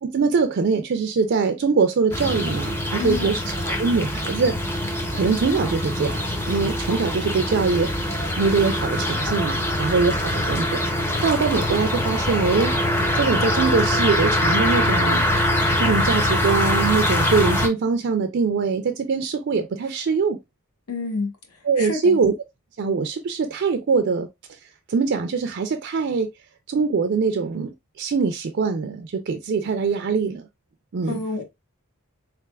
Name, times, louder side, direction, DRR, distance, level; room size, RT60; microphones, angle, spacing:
voice 1, 0.0-3.4 3.7-4.6 5.1-7.9 8.4-10.8 11.2-12.7 13.1-15.2 15.8-20.4 21.7-22.3 22.8-24.3 24.9-26.3 26.7-30.5 30.9-31.2, right 5 dB, 50° right, 0.4 m, -23 dB
sound 1, 2.1-17.7, left 1 dB, 10° left, 0.5 m, -23 dB
voice 2, 3.0-3.4 20.9-21.3 21.8-22.2 31.1-31.4, left 3 dB, 80° left, 1.1 m, -28 dB
3.6 x 3.3 x 2.3 m
head